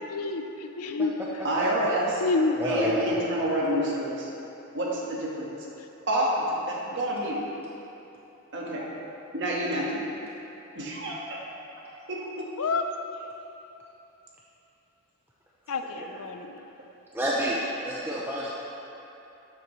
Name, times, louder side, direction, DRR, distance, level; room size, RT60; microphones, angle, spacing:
voice 1, 0.0-1.1 2.2-2.6 12.6-12.8 15.7-16.6, left 3 dB, 80° left, 6 dB, 0.6 m, -28 dB
voice 2, 1.4-2.2 2.6-4.3 4.7-5.5 6.1-7.4 8.5-8.9 9.3-10.0 10.7-12.5, right 1 dB, 55° right, -4 dB, 1.5 m, -28 dB
voice 3, 2.6-3.1 15.8-16.2 17.1-18.5, equal, 10° right, -5 dB, 0.6 m, -29 dB
12.0 x 7.4 x 3.2 m, 3.0 s
head